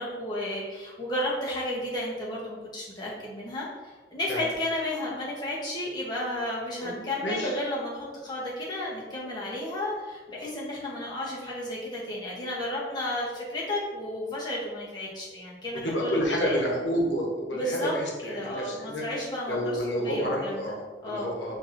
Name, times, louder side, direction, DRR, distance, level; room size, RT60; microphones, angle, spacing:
voice 1, 0.0-16.6 17.5-17.9 18.2-20.7 21.0-21.3, left 1 dB, 25° left, -5 dB, 0.8 m, -33 dB
voice 2, 6.8-7.5 15.8-19.0 19.5-21.6, equal, 85° left, -2 dB, 0.9 m, -30 dB
5.9 x 2.6 x 2.5 m, 1.3 s
head